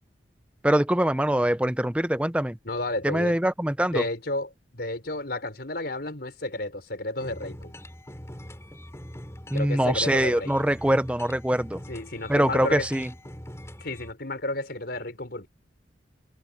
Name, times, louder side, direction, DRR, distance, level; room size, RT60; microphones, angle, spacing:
voice 1, 0.6-2.6 3.0-4.1 9.5-11.8 12.3-13.1, right 1 dB, 5° right, 0.8 m, -23 dB
voice 2, 2.7-3.4 3.9-7.7 9.5-10.5 11.9-12.9 13.8-15.5, left 2 dB, 60° left, 5.3 m, -32 dB
sound 1, 7.2-14.1, equal, 15° left, 4.4 m, -42 dB
head